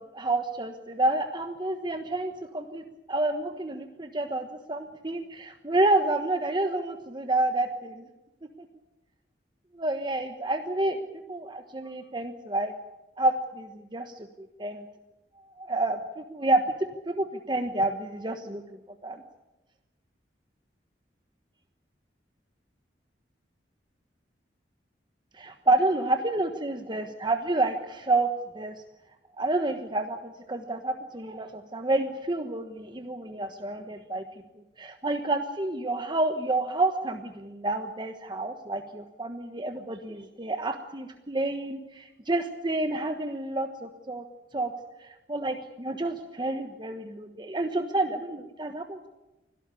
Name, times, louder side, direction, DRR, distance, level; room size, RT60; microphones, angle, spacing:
voice 1, 0.0-2.8 3.1-8.1 9.7-11.0 11.3-12.7 13.2-14.3 14.6-14.8 15.6-16.6 17.1-18.6 19.0-19.2 25.3-28.3 28.5-28.7 29.4-34.2 34.8-44.2 44.5-44.7 45.0-49.1, right 2 dB, 25° right, 6 dB, 1.2 m, -29 dB
25.5 x 17.0 x 8.4 m, 1.0 s
head